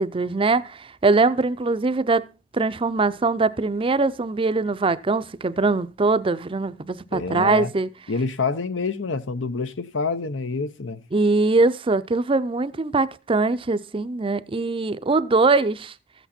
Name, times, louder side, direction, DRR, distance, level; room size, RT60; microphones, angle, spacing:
voice 1, 0.0-2.3 2.5-7.9 11.1-15.9, right 3 dB, 30° right, 0.5 m, -22 dB
voice 2, 7.1-7.7 8.1-11.0, left 4 dB, 85° left, 0.8 m, -27 dB
14.0 x 8.1 x 4.3 m
head